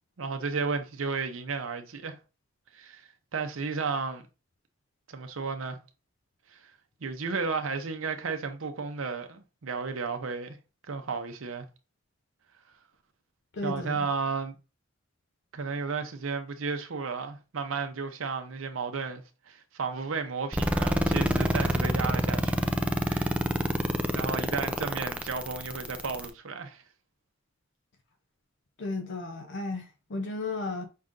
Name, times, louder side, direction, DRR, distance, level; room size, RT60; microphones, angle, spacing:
voice 1, 0.2-2.2 2.7-3.0 3.3-4.2 5.1-5.8 6.5-6.7 7.0-10.6 10.9-11.7 13.6-14.6 15.5-22.8 23.1-23.4 24.1-26.8, right 4 dB, 80° right, 0.7 m, -33 dB
voice 2, 13.5-14.1 28.8-30.8, left 2 dB, 60° left, 0.6 m, -34 dB
sound 1, 20.5-26.3, equal, 5° right, 0.4 m, -27 dB
5.4 x 2.5 x 3.6 m
head